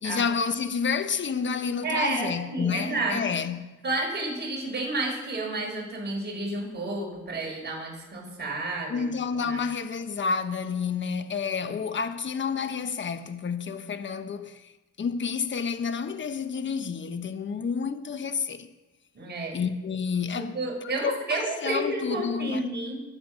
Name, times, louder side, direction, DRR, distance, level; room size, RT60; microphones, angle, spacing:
voice 1, 0.0-3.7 8.9-14.7 15.0-18.7 19.5-20.6 20.8-22.8, left 6 dB, 40° left, 1.2 m, -30 dB
voice 2, 1.8-3.2 3.8-9.1 9.3-9.6 11.6-11.8 19.1-19.6 20.4-23.0, right 2 dB, 35° right, 6.1 m, -31 dB
22.5 x 8.2 x 6.4 m
cardioid pair, 90°, 30 cm